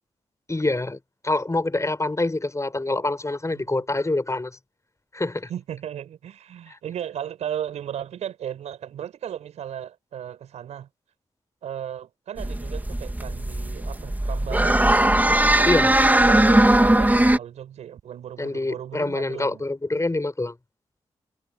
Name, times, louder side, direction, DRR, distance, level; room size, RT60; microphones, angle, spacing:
voice 1, 0.5-4.6 5.1-5.5 6.7-6.8 15.6-15.9 18.4-20.6, left 2 dB, 25° left, 6.7 m, -26 dB
voice 2, 3.5-3.8 5.5-10.9 11.6-14.9 15.5-15.7 16.2-19.6, right 10 dB, 90° right, 6.1 m, -35 dB
sound 1, 12.4-17.4, right 1 dB, 15° right, 3.1 m, -19 dB
supercardioid pair, 45°, 11 cm